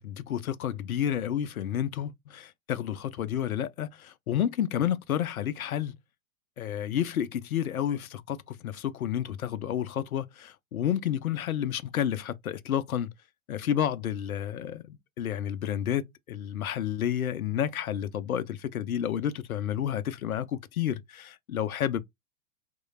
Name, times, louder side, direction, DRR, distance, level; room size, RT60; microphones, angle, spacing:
voice 1, 0.0-6.0 6.6-13.1 13.5-22.0, left 10 dB, 85° left, 0.6 m, -30 dB
3.0 x 2.2 x 2.3 m
hypercardioid pair, 105°, 41 cm